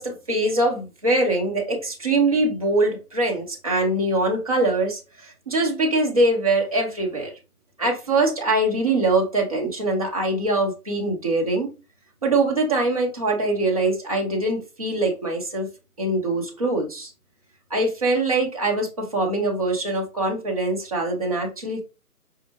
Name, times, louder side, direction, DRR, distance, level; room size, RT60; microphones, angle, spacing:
voice 1, 0.0-7.3 7.8-11.7 12.2-15.7 16.0-17.1 17.7-21.8, right 2 dB, 25° right, 0.7 m, -23 dB
5.3 x 2.4 x 2.9 m
figure-of-eight pair, 155°, 46 cm